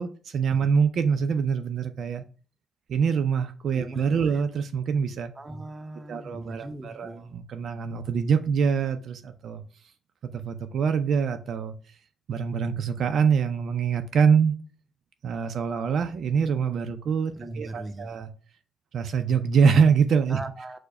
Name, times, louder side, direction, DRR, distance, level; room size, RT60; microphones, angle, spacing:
voice 1, 0.0-2.2 2.9-5.3 6.1-9.6 10.2-11.8 12.3-14.5 15.2-18.3 18.9-20.4, right 6 dB, 65° right, 0.4 m, -24 dB
voice 2, 3.8-4.4 5.4-7.3 17.4-18.2 20.3-20.8, right 2 dB, 20° right, 0.6 m, -39 dB
4.6 x 2.1 x 4.7 m
cardioid pair, 90°, 0 cm